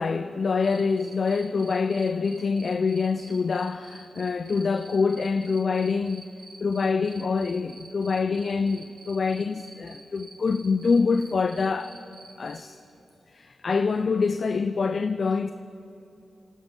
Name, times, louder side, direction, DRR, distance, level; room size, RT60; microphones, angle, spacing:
voice 1, 0.0-6.3 6.6-11.9 12.4-12.8 13.3-15.5, left 4 dB, 45° left, 0.3 m, -25 dB
Cricket, 0.6-12.6, right 3 dB, 65° right, 1.8 m, -48 dB
26.0 x 8.9 x 3.7 m
wide cardioid pair, 140°, 0 cm